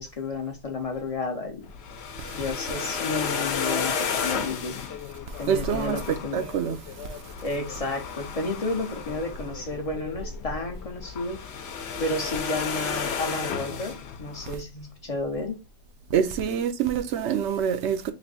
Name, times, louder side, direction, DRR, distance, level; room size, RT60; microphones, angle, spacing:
voice 1, 0.0-1.7 2.3-4.8 5.4-6.5 7.4-11.4 12.0-15.6, left 2 dB, 45° left, 0.5 m, -32 dB
sound 1, 1.6-14.5, left 6 dB, 70° left, 0.9 m, -33 dB
voice 2, 5.5-6.8 16.1-18.1, right 8 dB, 80° right, 0.9 m, -26 dB
3.2 x 2.6 x 4.0 m
omnidirectional pair, 1.2 m